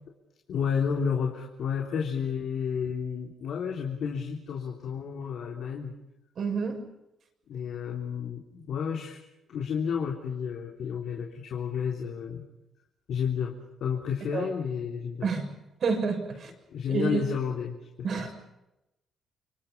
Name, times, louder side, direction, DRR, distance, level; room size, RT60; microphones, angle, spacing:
voice 1, 0.5-5.9 7.5-9.2 9.5-12.4 13.1-15.3 16.7-17.8 18.1-18.3, left 7 dB, 70° left, 1 dB, 3.6 m, -31 dB
voice 2, 6.4-6.8 14.3-14.5 15.2-15.5 15.8-16.5 16.9-17.2 18.0-18.3, right 5 dB, 55° right, 5 dB, 6.6 m, -28 dB
29.5 x 25.0 x 5.6 m, 0.91 s
cardioid pair, 90°, 0 cm